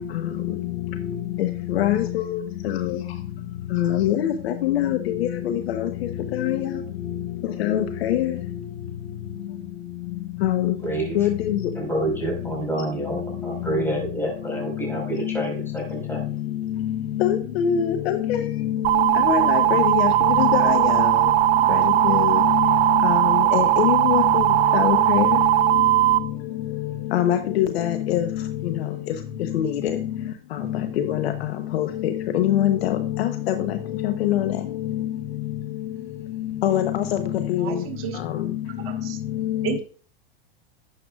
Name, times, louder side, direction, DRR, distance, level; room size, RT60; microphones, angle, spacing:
voice 1, 1.8-2.1 2.3-2.4 3.7-5.3 5.8-5.9 6.3-6.6 7.6-8.3 10.4-10.7 11.2-11.6 17.2-18.4 19.3-20.1 20.4-21.0 21.7-21.8 22.0-22.6 23.0-23.2 23.5-24.4 24.7-25.3 27.1-28.2 29.5-30.0 31.0-31.3 31.7-31.9 32.3-33.5 34.2-34.5 36.6-37.0 37.5-37.7 39.5-39.6, left 11 dB, 85° left, 7 dB, 1.0 m, -22 dB
voice 2, 10.8-11.2 11.7-16.2, right 2 dB, 5° left, -1 dB, 4.6 m, -28 dB
sound 1, 18.8-26.2, right 15 dB, 80° right, 0.8 m, -19 dB
voice 3, 37.6-38.2 38.9-39.2 39.6-39.8, right 9 dB, 45° right, 2 dB, 2.2 m, -31 dB
11.5 x 7.7 x 2.4 m, 0.42 s
supercardioid pair, 125°, 30 cm